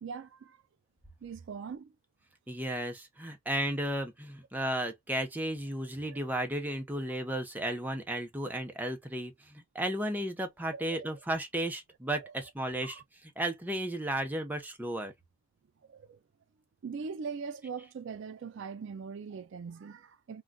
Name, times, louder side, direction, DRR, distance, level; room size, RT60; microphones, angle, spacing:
voice 1, 0.0-0.6 1.2-1.9 6.1-6.2 10.7-11.1 12.8-13.0 15.9-16.2 16.8-20.4, right 5 dB, 70° right, 0.4 m, -41 dB
voice 2, 2.5-15.1, right 1 dB, 10° right, 0.7 m, -34 dB
3.8 x 2.3 x 2.2 m
head